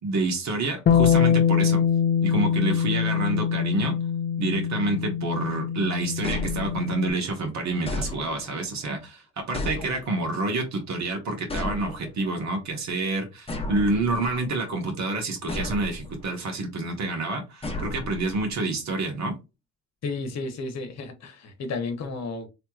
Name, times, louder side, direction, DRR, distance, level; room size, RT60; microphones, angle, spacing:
voice 1, 0.0-1.8 2.2-4.0 4.4-19.4, right 2 dB, 65° right, 1.3 m, -28 dB
Bass guitar, 0.9-7.1, left 8 dB, 35° left, 0.4 m, -23 dB
sound 1, 6.2-7.1 7.9-8.7 9.5-10.4 11.5-12.3 13.5-14.5 15.5-16.3 17.6-18.5, left 1 dB, 20° left, 1.0 m, -34 dB
voice 2, 20.0-22.5, left 3 dB, 60° left, 1.0 m, -32 dB
3.3 x 2.9 x 2.4 m
cardioid pair, 90°, 30 cm